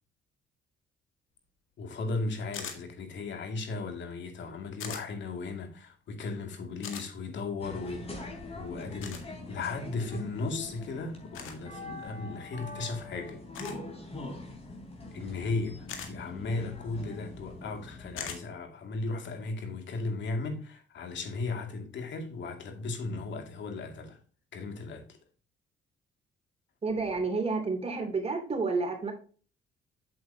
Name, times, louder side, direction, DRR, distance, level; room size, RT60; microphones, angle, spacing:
voice 1, 1.8-13.4 15.1-24.2 24.5-25.0, left 3 dB, 65° left, 2.3 m, -36 dB
sound 1, 2.5-2.8 4.8-5.0 6.8-7.1 9.0-9.2 11.3-11.6 13.5-13.8 15.9-16.1 18.2-18.4, left 7 dB, 85° left, 1.9 m, -39 dB
sound 2, 7.6-18.4, left 2 dB, 30° left, 3.9 m, -43 dB
voice 2, 26.8-29.1, right 4 dB, 30° right, 2.8 m, -30 dB
7.8 x 7.8 x 2.8 m
cardioid pair, 90°, 20 cm